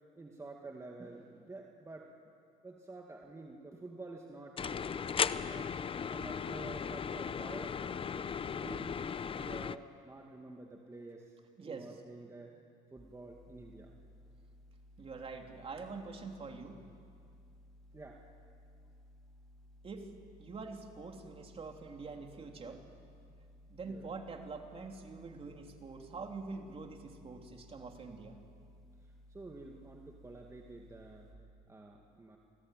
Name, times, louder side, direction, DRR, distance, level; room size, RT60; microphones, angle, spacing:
voice 1, 0.2-2.1 2.6-4.9 5.3-5.7 6.1-8.9 9.3-11.3 11.6-12.5 12.9-13.9 17.9-18.2 23.8-24.1 29.3-31.3 31.7-32.4, right 2 dB, 15° right, 0 dB, 2.2 m, -49 dB
sound 1, 4.6-9.8, left 7 dB, 30° left, 0.7 m, -36 dB
voice 2, 11.6-12.0 15.0-16.8 19.8-20.1 20.4-22.8 23.7-28.4, right 4 dB, 35° right, 3 dB, 3.2 m, -45 dB
sound 2, 13.0-31.3, left 1 dB, 5° left, 4.8 m, -59 dB
29.0 x 19.5 x 9.2 m, 2.3 s
cardioid pair, 110°, 17 cm